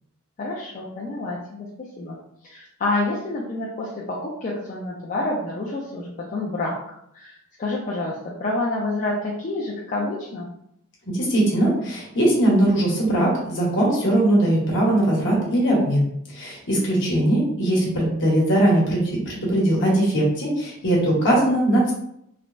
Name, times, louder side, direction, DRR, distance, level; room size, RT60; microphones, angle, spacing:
voice 1, 0.4-1.7 2.0-2.2 2.4-6.8 7.1-10.5, left 2 dB, 40° left, -4 dB, 0.4 m, -28 dB
voice 2, 11.1-16.1 16.3-21.9, right 1 dB, 65° left, -3 dB, 1.0 m, -20 dB
3.3 x 2.0 x 2.4 m, 0.74 s
head